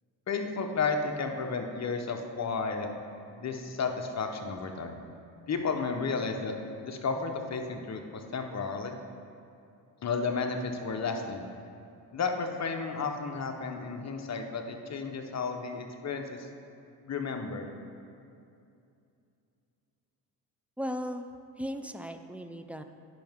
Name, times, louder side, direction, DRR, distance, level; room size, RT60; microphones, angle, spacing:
voice 1, 0.3-2.9 3.3-5.0 5.5-6.5 6.8-9.0 10.0-11.5 12.1-16.5 17.1-17.7, left 4 dB, 40° left, 4 dB, 0.9 m, -32 dB
voice 2, 20.8-21.3 21.6-22.8, equal, 5° right, 7 dB, 0.3 m, -36 dB
10.0 x 5.7 x 3.6 m, 2.6 s
supercardioid pair, 70°, 42 cm